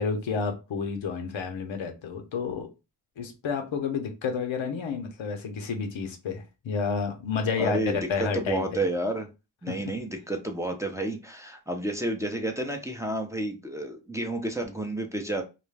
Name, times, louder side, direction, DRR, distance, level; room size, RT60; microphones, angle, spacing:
voice 1, 0.0-2.7 3.2-8.8 9.7-9.9, left 5 dB, 80° left, 0.7 m, -30 dB
voice 2, 7.6-8.1 8.3-9.3 9.6-15.4, right 1 dB, 5° right, 0.6 m, -30 dB
2.4 x 2.1 x 3.2 m
cardioid pair, 45°, 47 cm